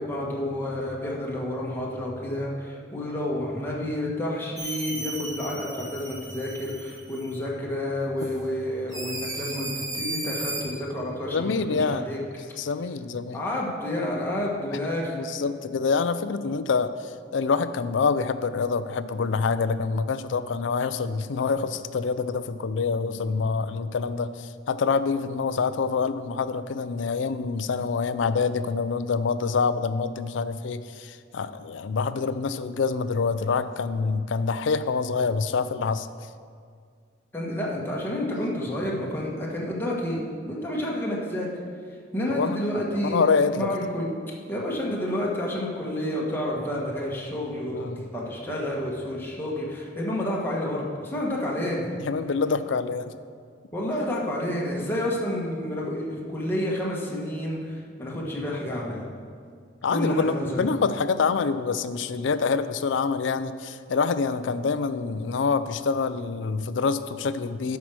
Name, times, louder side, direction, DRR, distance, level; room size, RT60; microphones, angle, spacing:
voice 1, 0.0-12.2 13.3-15.2 37.3-41.5 42.1-43.2 43.5-44.1 44.5-51.9 53.7-59.0 59.9-60.7, left 1 dB, 10° left, -4 dB, 1.4 m, -29 dB
sound 1, 4.6-7.4 8.2-8.3 8.9-10.6, right 2 dB, 20° right, 1.4 m, -35 dB
voice 2, 11.3-12.0 12.6-13.4 15.1-36.1 42.3-42.6 43.0-43.7 47.7-48.0 52.0-53.1 59.8-67.8, left 5 dB, 80° left, 13 dB, 0.4 m, -26 dB
11.5 x 4.7 x 6.2 m, 2.1 s
head